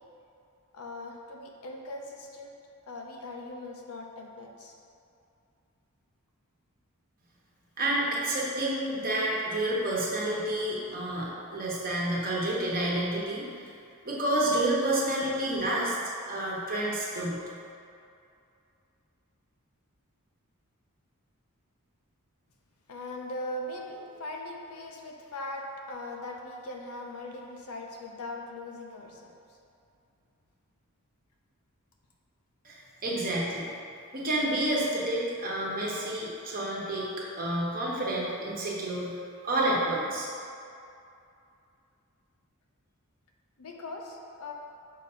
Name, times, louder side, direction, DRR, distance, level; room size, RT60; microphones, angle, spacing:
voice 1, 0.7-2.6 2.9-4.7 10.9-11.0 15.2-15.3 22.9-29.3 43.6-44.5, left 1 dB, 80° left, 1 dB, 0.7 m, -40 dB
voice 2, 7.8-13.5 14.0-16.0 16.3-17.4 32.6-33.7 34.1-37.1 37.4-39.1 39.4-40.3, right 1 dB, 40° right, -5 dB, 1.1 m, -29 dB
6.3 x 2.7 x 5.5 m, 2.5 s
head